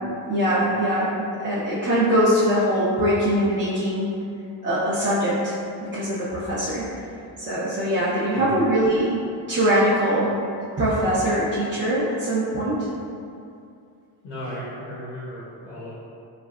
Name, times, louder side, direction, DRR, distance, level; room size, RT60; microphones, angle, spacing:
voice 1, 0.0-4.1 4.6-5.5 5.8-6.9 7.4-10.4 10.8-12.9, equal, 25° right, -10 dB, 0.6 m, -22 dB
voice 2, 14.2-15.9, left 1 dB, 85° left, -8 dB, 0.8 m, -35 dB
3.2 x 2.2 x 2.3 m, 2.5 s
cardioid pair, 70°, 47 cm